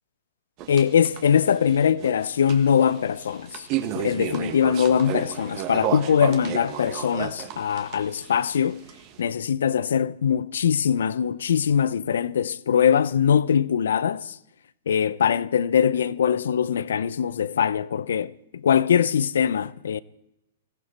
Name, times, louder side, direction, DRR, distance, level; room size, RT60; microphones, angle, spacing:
sound 1, 0.6-9.2, right 11 dB, 40° right, 1.5 m, -33 dB
voice 1, 0.7-3.7 3.9-8.8 9.2-14.4 14.9-20.0, left 8 dB, 75° left, 0.5 m, -22 dB
19.5 x 15.0 x 4.4 m
hypercardioid pair, 130°, 0 cm